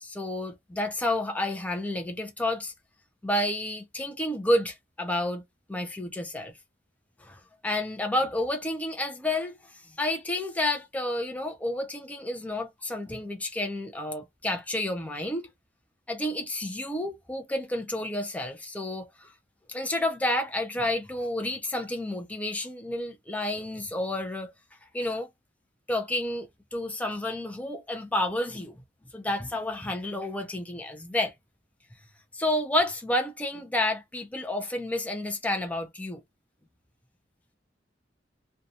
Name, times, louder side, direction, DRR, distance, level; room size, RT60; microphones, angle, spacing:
voice 1, 0.0-2.7 3.2-5.4 5.7-6.6 7.2-15.5 16.1-19.3 19.7-24.5 24.9-25.3 25.9-28.8 29.1-31.3 32.3-36.2, left 1 dB, 10° left, 0.4 m, -30 dB
2.7 x 2.2 x 2.4 m
head